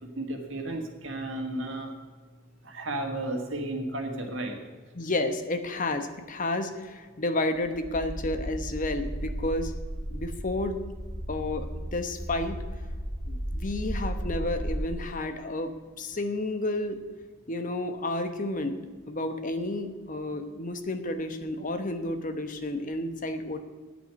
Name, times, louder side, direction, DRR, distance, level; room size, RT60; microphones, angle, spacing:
voice 1, 0.2-1.9 2.6-4.6, right 1 dB, 60° right, 3 dB, 2.0 m, -33 dB
voice 2, 4.9-9.7 10.1-10.8 11.3-12.6 13.3-17.0 17.5-18.7 19.1-23.6, left 2 dB, 40° left, 8 dB, 1.0 m, -31 dB
sound 1, 7.6-14.9, equal, 5° right, 0.8 m, -34 dB
9.2 x 8.4 x 7.8 m, 1.4 s
head